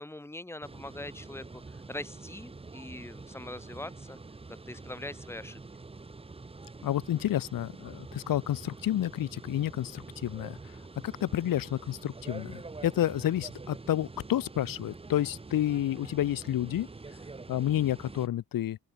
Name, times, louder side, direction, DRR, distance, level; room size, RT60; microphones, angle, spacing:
voice 1, 0.0-1.4 1.9-4.2 4.5-5.6, left 1 dB, 5° left, 4.6 m, -42 dB
sound 1, 0.6-18.3, right 3 dB, 15° right, 3.6 m, -46 dB
voice 2, 6.8-10.6 11.0-16.9 17.5-18.8, left 12 dB, 75° left, 2.1 m, -30 dB
open air
wide cardioid pair, 175°, 34 cm